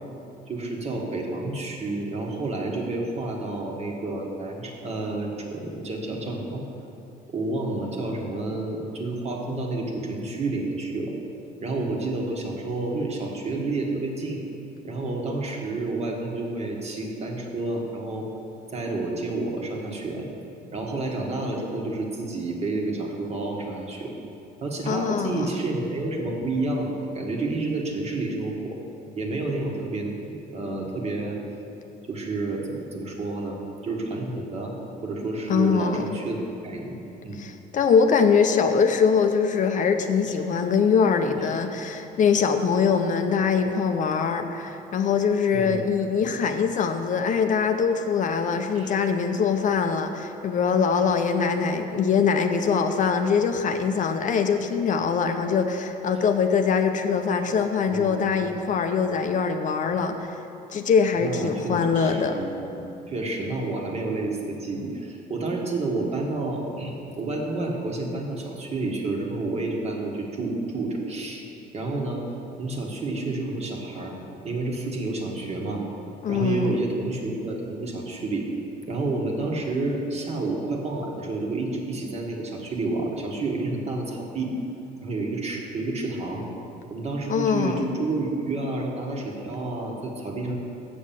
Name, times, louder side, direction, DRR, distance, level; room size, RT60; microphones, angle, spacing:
voice 1, 0.5-6.7 7.3-11.1 11.6-14.4 14.8-18.3 18.7-20.3 20.7-24.2 24.6-28.8 29.2-30.1 30.5-31.4 32.1-33.6 33.8-34.7 35.0-36.4 36.6-37.0 37.2-37.4 45.5-45.8 48.7-48.9 57.8-58.5 61.1-62.8 63.1-71.4 71.7-72.2 72.6-74.2 74.4-75.8 76.3-78.5 78.9-84.5 85.0-86.5 86.9-90.6, right 2 dB, 40° right, 0 dB, 1.5 m, -29 dB
voice 2, 24.9-25.5 35.5-36.2 37.4-60.4 60.7-62.4 76.2-76.8 87.3-87.8, left 6 dB, 50° left, 6 dB, 0.6 m, -23 dB
7.0 x 6.4 x 7.5 m, 2.8 s
cardioid pair, 110°, 17 cm